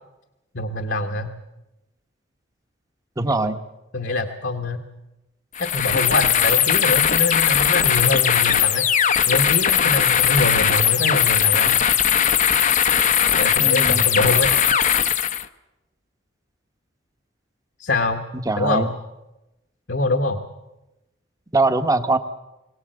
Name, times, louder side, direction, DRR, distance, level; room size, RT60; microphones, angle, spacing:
voice 1, 0.5-1.3 3.3-3.5 3.9-4.8 5.6-8.8 9.3-11.8 13.3-14.6 17.8-18.2 18.6-18.9 19.9-20.4, left 2 dB, 60° left, 4 dB, 1.3 m, -24 dB
voice 2, 3.2-3.6 13.6-14.1 18.5-18.9 21.5-22.2, right 2 dB, 20° right, 9 dB, 1.0 m, -21 dB
sound 1, 5.5-15.5, left 9 dB, 40° left, 0.7 m, -19 dB
22.5 x 18.0 x 7.8 m, 0.97 s
head